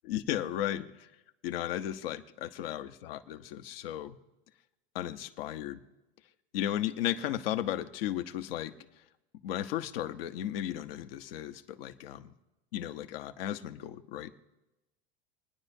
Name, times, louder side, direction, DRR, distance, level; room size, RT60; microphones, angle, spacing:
voice 1, 0.1-1.1 1.4-4.2 4.9-5.8 6.5-8.7 9.4-12.3 12.7-14.3, left 12 dB, 80° left, 9 dB, 0.9 m, -35 dB
27.5 x 9.8 x 2.7 m, 1.0 s
hypercardioid pair, 105°, 29 cm